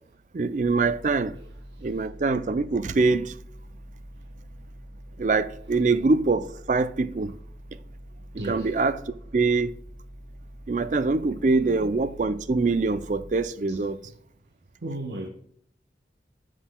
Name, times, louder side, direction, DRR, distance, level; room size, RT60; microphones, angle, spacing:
voice 1, 0.3-1.3 1.8-3.3 5.2-7.3 8.4-9.0 9.3-9.7 10.7-14.0, right 3 dB, 45° right, 0.4 m, -24 dB
sound 1, 0.5-13.4, equal, 45° left, 3.0 m, -45 dB
voice 2, 1.7-2.1 8.4-8.7 11.7-11.9 13.7-13.8 14.0-14.1 14.8-15.3, right 1 dB, 75° right, 0.9 m, -36 dB
9.8 x 6.0 x 2.2 m
head